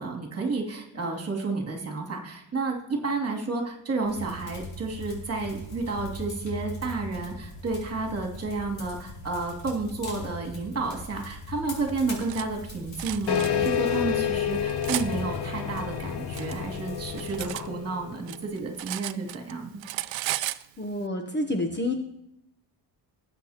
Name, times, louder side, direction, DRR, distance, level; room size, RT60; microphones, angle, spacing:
voice 1, 0.0-19.8, right 3 dB, 35° right, 1 dB, 2.6 m, -31 dB
sound 1, 4.0-17.5, left 2 dB, 75° left, 4.7 m, -40 dB
Cutlery silverware, 11.9-12.5 13.0-13.5 14.2-15.1 16.0-17.7 18.0-19.5 19.8-20.6, right 15 dB, 90° right, 0.6 m, -34 dB
sound 2, 13.3-18.4, left 9 dB, 60° left, 0.7 m, -29 dB
voice 2, 20.8-21.9, left 1 dB, 25° left, 4 dB, 0.8 m, -28 dB
19.0 x 8.1 x 2.9 m, 0.79 s
wide cardioid pair, 145°, 44 cm